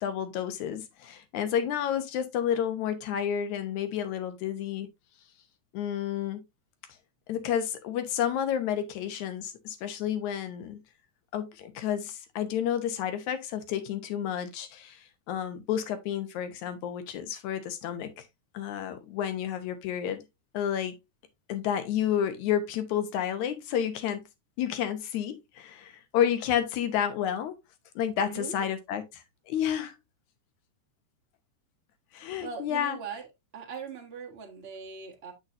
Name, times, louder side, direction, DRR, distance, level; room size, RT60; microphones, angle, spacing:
voice 1, 0.0-4.9 5.7-6.4 7.3-10.8 11.3-18.3 18.5-20.2 20.5-21.0 21.5-24.2 24.6-27.6 28.0-30.0 32.1-33.0, left 9 dB, 75° left, 2.3 m, -30 dB
voice 2, 28.2-28.7 32.4-33.3 33.5-35.3, right 6 dB, 40° right, 0.8 m, -40 dB
7.7 x 6.6 x 2.6 m
omnidirectional pair, 3.4 m